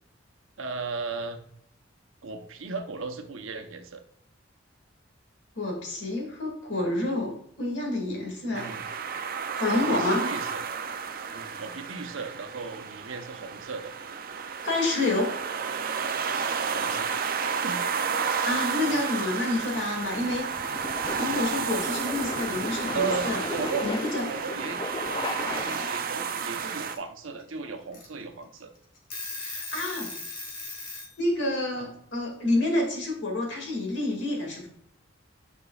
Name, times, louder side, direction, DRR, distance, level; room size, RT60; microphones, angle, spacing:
voice 1, 0.6-1.4 2.2-4.0 8.5-8.8 9.7-10.6 11.3-13.9 16.7-17.8 21.7-22.0 22.9-23.9 24.2-24.8 25.3-28.7 31.8-31.9, right 4 dB, 85° right, 6 dB, 0.8 m, -36 dB
voice 2, 5.6-8.7 9.5-10.2 14.6-15.3 18.4-20.5 21.1-23.4 23.8-24.3 29.3-30.1 31.2-34.7, left 2 dB, 60° left, -1 dB, 2.3 m, -28 dB
sound 1, 8.6-27.0, right 6 dB, 45° right, 0.5 m, -31 dB
sound 2, 18.6-26.2, left 2 dB, 25° left, 0.4 m, -36 dB
Alarm / Clock, 19.5-20.2 21.4-21.5 21.7-22.5 23.6-24.3 25.7-25.8 26.5-27.0 27.4-27.5 27.9-28.0 28.6-28.7 28.9-31.1, left 3 dB, 45° left, 1.8 m, -39 dB
9.9 x 5.2 x 2.4 m, 0.69 s
head